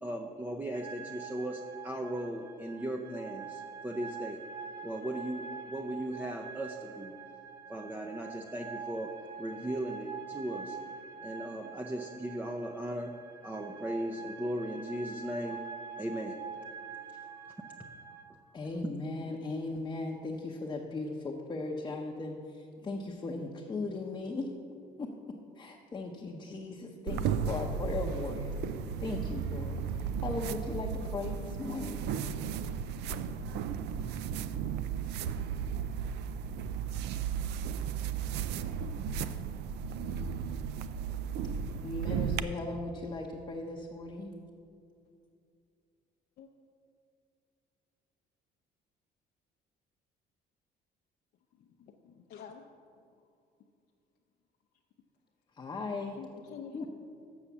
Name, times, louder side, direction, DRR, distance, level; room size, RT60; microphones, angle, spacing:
voice 1, 0.0-4.4 4.8-7.2 7.7-9.1 9.4-10.8 11.2-13.1 13.4-15.6 16.0-16.4 17.4-17.5, right 1 dB, 10° right, 3 dB, 0.6 m, -37 dB
sound 1, 0.7-18.2, right 6 dB, 60° right, 0.9 m, -45 dB
voice 2, 18.5-24.5 25.0-25.1 25.6-28.5 29.0-29.8 30.2-32.0 41.8-44.3 55.6-56.2 56.7-56.9, left 3 dB, 25° left, 0 dB, 0.8 m, -37 dB
sound 2, 27.1-42.4, right 7 dB, 80° right, 0.4 m, -35 dB
voice 3, 51.8-52.6 56.1-56.9, left 7 dB, 65° left, 2 dB, 0.6 m, -47 dB
7.0 x 6.5 x 7.2 m, 2.5 s
cardioid pair, 110°, 17 cm